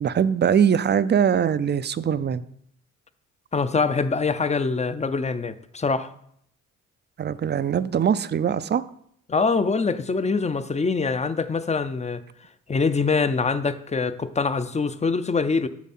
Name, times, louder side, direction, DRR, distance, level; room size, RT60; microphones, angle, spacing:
voice 1, 0.0-2.4 7.2-8.9, right 8 dB, 35° right, 0.4 m, -22 dB
voice 2, 3.5-6.1 9.3-12.2 12.7-15.7, left 4 dB, 20° left, 0.6 m, -24 dB
7.1 x 6.2 x 4.3 m
cardioid pair, 80°, 31 cm